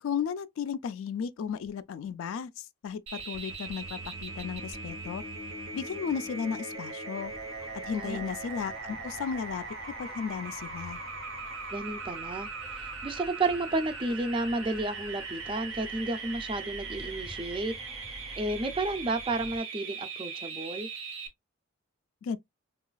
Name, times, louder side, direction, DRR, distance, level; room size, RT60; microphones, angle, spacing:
voice 1, 0.0-5.2 5.7-7.3 7.8-9.6 10.0-11.0 22.2-22.4, left 7 dB, 75° left, 0.3 m, -34 dB
sound 1, 3.1-21.3, right 4 dB, 80° right, 0.9 m, -40 dB
sound 2, 7.2-19.6, left 1 dB, 20° left, 0.6 m, -49 dB
voice 2, 7.9-8.3 11.7-17.7 18.4-20.9, right 2 dB, 25° right, 0.4 m, -32 dB
3.8 x 2.3 x 2.2 m
head